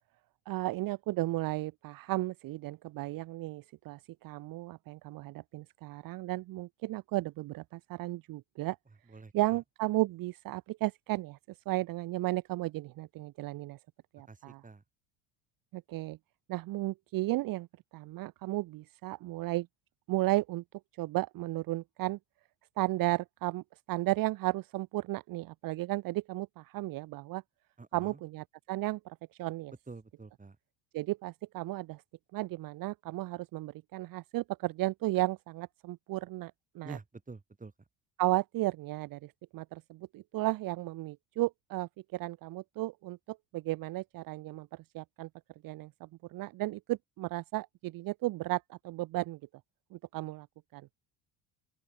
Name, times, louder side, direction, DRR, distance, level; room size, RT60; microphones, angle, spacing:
voice 1, 0.5-8.8 9.3-13.8 14.1-14.6 15.7-16.2 16.5-17.7 17.9-19.7 20.1-20.6 21.0-22.2 22.8-27.4 27.9-29.7 30.9-32.0 32.3-37.0 38.2-45.3 45.6-49.4 49.9-50.5 50.7-50.9, right 18 dB, 50° right, 0.9 m, -34 dB
voice 2, 9.1-9.6 14.3-14.8 27.8-28.2 29.9-30.6 36.8-37.7, right 3 dB, 20° right, 5.3 m, -48 dB
open air
hypercardioid pair, 70°, 43 cm